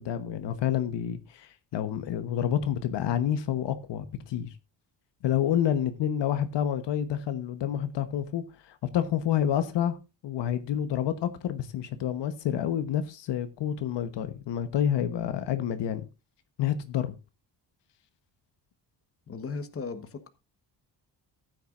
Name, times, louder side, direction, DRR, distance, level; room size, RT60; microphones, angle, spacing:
voice 1, 0.0-4.5 5.2-10.0 10.2-16.0 16.6-17.1, left 10 dB, 75° left, 1.2 m, -28 dB
voice 2, 19.3-20.3, left 4 dB, 30° left, 1.3 m, -36 dB
14.5 x 9.2 x 2.5 m
cardioid pair, 120°, 43 cm